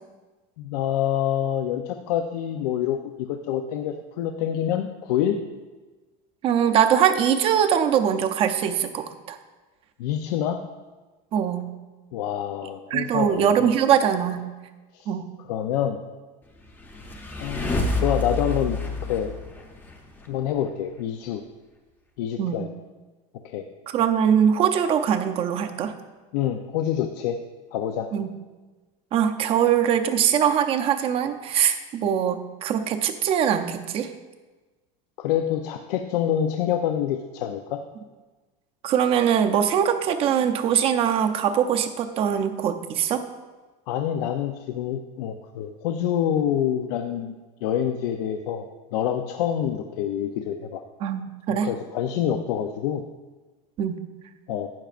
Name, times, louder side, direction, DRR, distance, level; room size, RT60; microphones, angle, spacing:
voice 1, 0.6-5.4 10.0-10.6 12.1-13.7 14.9-15.1 15.5-16.0 17.4-18.8 19.1-19.3 20.3-21.4 22.2-22.7 23.4-23.6 26.3-27.4 27.7-28.1 35.2-37.8 43.9-47.3 47.6-48.6 48.9-50.8 51.5-53.0 54.5-54.7, left 10 dB, 80° left, 6 dB, 0.6 m, -26 dB
voice 2, 6.4-9.4 11.3-11.7 12.9-14.5 15.1-15.3 22.4-22.6 23.9-25.9 28.1-28.3 29.1-34.1 38.8-43.2 51.0-51.7 53.8-54.0, right 8 dB, 30° right, 8 dB, 0.5 m, -22 dB
sound 1, 16.7-20.3, left 2 dB, 10° left, 0.7 m, -28 dB
12.0 x 9.1 x 2.5 m, 1.3 s
cardioid pair, 175°, 20 cm